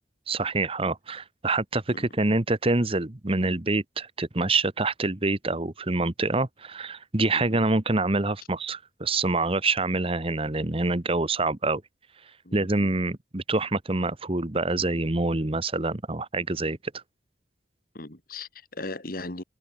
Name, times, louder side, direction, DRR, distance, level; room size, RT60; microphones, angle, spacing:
voice 1, 0.3-11.8 12.5-17.0, right 2 dB, 30° right, 1.3 m, -26 dB
voice 2, 7.3-7.6 12.4-12.7 17.9-19.4, left 2 dB, 50° left, 2.5 m, -38 dB
head